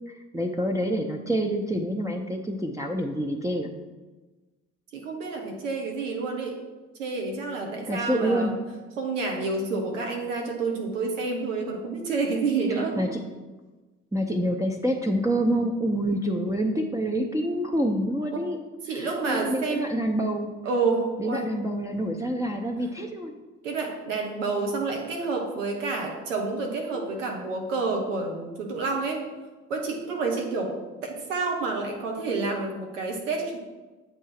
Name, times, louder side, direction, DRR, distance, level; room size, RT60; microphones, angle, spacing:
voice 1, 0.1-3.7 7.9-8.5 12.7-13.2 14.1-18.6 18.9-20.5 21.2-23.3, equal, 10° right, -1 dB, 0.6 m, -27 dB
voice 2, 4.9-6.6 7.0-8.5 9.0-13.0 18.8-19.9 20.6-21.5 23.6-29.2 29.7-30.7 31.0-33.6, right 3 dB, 90° right, 1 dB, 0.8 m, -29 dB
8.0 x 2.7 x 5.7 m, 1.2 s
hypercardioid pair, 45°, 36 cm